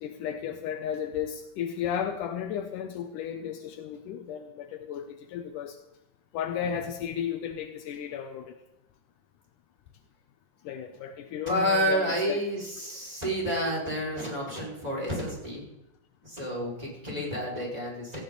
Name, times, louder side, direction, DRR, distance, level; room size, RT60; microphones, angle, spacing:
voice 1, 0.0-5.8 6.3-8.6 10.6-12.4 17.1-17.3, left 8 dB, 80° left, 6 dB, 2.5 m, -34 dB
voice 2, 11.5-15.7 16.2-18.2, equal, 10° right, -3 dB, 5.4 m, -29 dB
17.5 x 15.5 x 4.1 m, 0.90 s
omnidirectional pair, 3.7 m